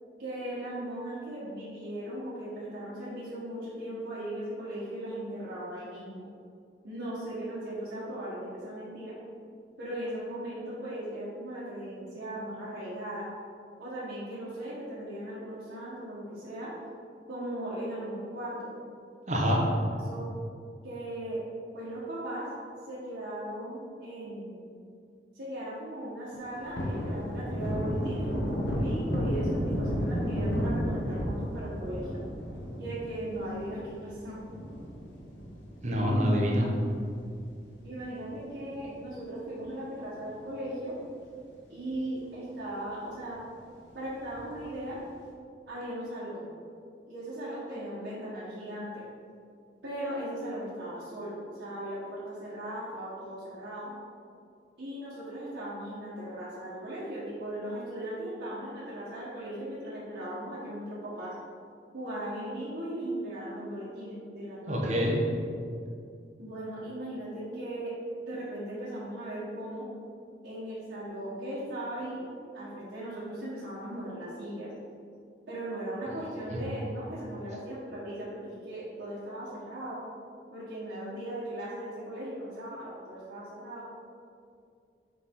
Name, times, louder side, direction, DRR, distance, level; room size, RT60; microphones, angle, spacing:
voice 1, 0.2-6.3 6.8-9.1 9.8-13.3 13.8-16.7 17.3-18.7 20.0-20.3 20.8-21.4 21.7-22.5 22.9-24.7 25.3-32.2 32.8-34.4 37.8-41.0 41.7-43.4 43.9-45.0 45.7-46.4 47.1-49.0 49.8-53.9 54.8-61.3 61.9-64.8 66.4-67.9 68.2-69.9 70.4-72.3 72.5-74.7 75.5-80.0 80.5-83.9, right 1 dB, 85° right, -10 dB, 1.4 m, -38 dB
voice 2, 19.3-19.6 35.8-36.7 64.7-65.1, equal, 40° right, -2 dB, 1.0 m, -25 dB
Thunder, 26.3-37.1 37.4-37.5 37.9-39.4 39.7-39.8 40.2-41.0 41.4-41.5 41.8-41.9 44.3-44.9, equal, 75° left, 1.0 m, -33 dB
6.7 x 4.2 x 3.8 m, 2.4 s
head